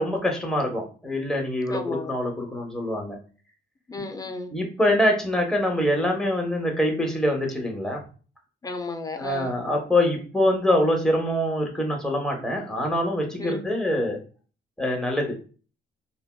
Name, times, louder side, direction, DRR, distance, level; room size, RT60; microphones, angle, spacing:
voice 1, 0.0-3.2 4.5-8.0 9.2-14.2 14.8-15.3, left 1 dB, 5° left, 1 dB, 0.8 m, -24 dB
voice 2, 1.7-2.2 3.9-4.5 8.6-9.6 13.4-13.6, left 3 dB, 20° left, 7 dB, 0.4 m, -33 dB
3.3 x 2.2 x 2.2 m, 0.39 s
cardioid pair, 90°, 20 cm